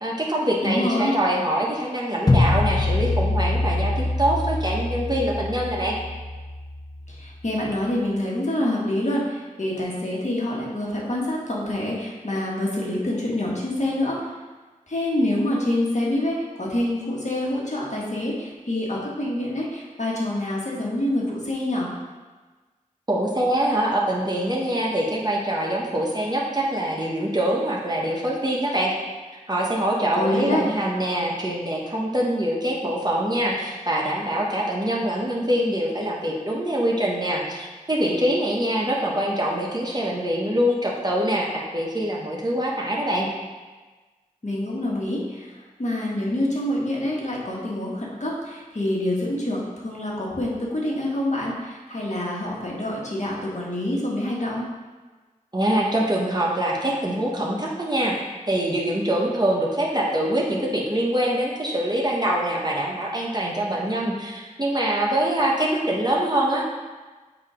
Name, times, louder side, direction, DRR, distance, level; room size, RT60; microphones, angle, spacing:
voice 1, 0.0-6.0 23.1-28.9 29.5-43.3 55.5-58.2 58.5-66.6, right 1 dB, 30° right, -3 dB, 1.0 m, -24 dB
voice 2, 0.6-1.1 7.1-14.2 14.9-21.9 30.1-30.6 44.4-45.5 45.8-54.6, left 1 dB, 55° left, -4 dB, 1.4 m, -26 dB
sound 1, 2.3-7.3, left 2 dB, 30° left, 0.5 m, -24 dB
8.0 x 2.8 x 5.0 m, 1.3 s
wide cardioid pair, 55°, 14 cm